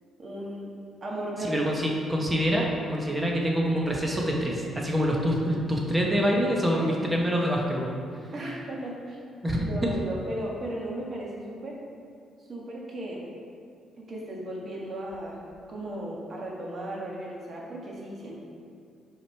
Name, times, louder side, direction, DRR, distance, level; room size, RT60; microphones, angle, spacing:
voice 1, 0.2-0.7 1.0-1.6 6.7-6.9 8.3-9.2 9.6-11.8 12.5-13.2 14.0-15.4 15.7-18.4, right 1 dB, 45° right, -3 dB, 1.6 m, -36 dB
voice 2, 1.4-8.3 9.4-9.9, equal, 15° right, -1 dB, 1.1 m, -26 dB
6.4 x 4.9 x 4.5 m, 2.3 s
cardioid pair, 90°, 0 cm